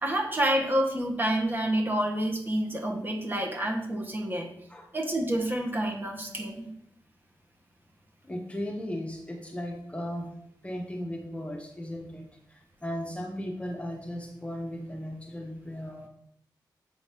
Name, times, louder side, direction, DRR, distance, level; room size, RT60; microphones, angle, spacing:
voice 1, 0.0-4.5 4.9-6.7, right 1 dB, 25° right, 1 dB, 1.4 m, -28 dB
voice 2, 8.3-10.3 10.6-12.2 12.5-16.1, equal, 15° left, 1 dB, 1.1 m, -36 dB
7.3 x 4.0 x 5.2 m, 0.71 s
wide cardioid pair, 110°, 8 cm